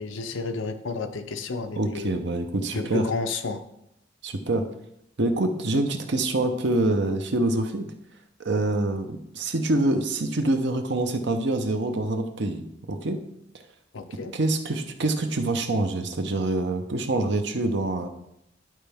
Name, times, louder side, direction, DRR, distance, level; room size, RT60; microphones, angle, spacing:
voice 1, 0.0-2.2 2.7-3.6 13.9-14.3, left 3 dB, 90° left, 8 dB, 0.7 m, -31 dB
voice 2, 1.8-3.0 4.2-4.7 5.2-7.9 8.4-13.2 14.3-18.1, right 2 dB, 65° right, 6 dB, 0.8 m, -25 dB
11.0 x 4.4 x 3.5 m, 0.79 s
head